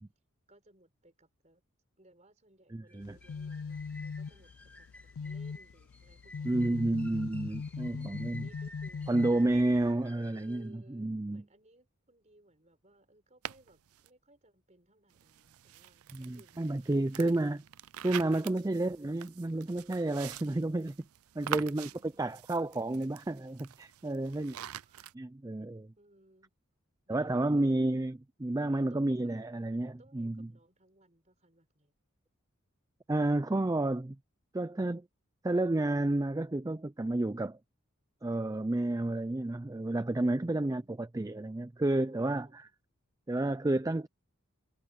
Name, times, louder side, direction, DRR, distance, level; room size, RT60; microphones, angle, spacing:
voice 1, 0.5-1.6 2.0-7.3 7.7-9.4 10.3-17.1 21.6-22.5 24.2-25.2 25.9-26.5 27.1-28.1 28.8-29.3 30.0-31.9 40.4-41.0 42.0-42.6, right 1 dB, 30° right, 4.3 m, -63 dB
voice 2, 2.7-3.2 6.4-8.4 9.1-11.4 16.1-17.6 18.0-21.0 21.4-21.9 22.2-24.5 25.2-25.9 27.1-30.5 33.1-34.2 34.5-35.0 35.4-37.6 38.2-42.7 43.3-44.1, right 2 dB, 15° right, 0.4 m, -31 dB
sound 1, 2.9-10.7, left 1 dB, 5° left, 3.0 m, -54 dB
sound 2, 3.0-9.9, left 5 dB, 70° left, 0.4 m, -41 dB
sound 3, 13.5-14.1 15.1-25.1, right 10 dB, 85° right, 0.5 m, -45 dB
head